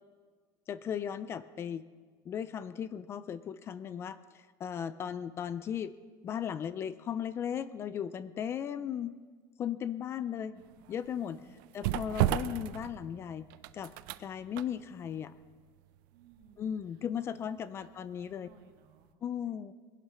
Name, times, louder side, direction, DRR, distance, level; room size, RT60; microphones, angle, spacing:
voice 1, 0.7-1.8 2.3-5.9 6.2-9.2 9.6-10.6 10.9-11.4 11.7-13.5 13.7-13.9 14.2-15.3 16.6-18.5 19.2-19.7, left 8 dB, 25° left, 16 dB, 0.4 m, -36 dB
voice 2, 10.2-10.8 11.2-11.6 16.1-16.7 17.2-17.9 18.2-19.2, right 5 dB, 60° right, 4 dB, 2.0 m, -60 dB
sound 1, 10.6-18.5 18.9-19.0, right 14 dB, 75° right, 0.6 m, -36 dB
20.0 x 11.0 x 5.6 m, 1.5 s
cardioid pair, 175°, 11 cm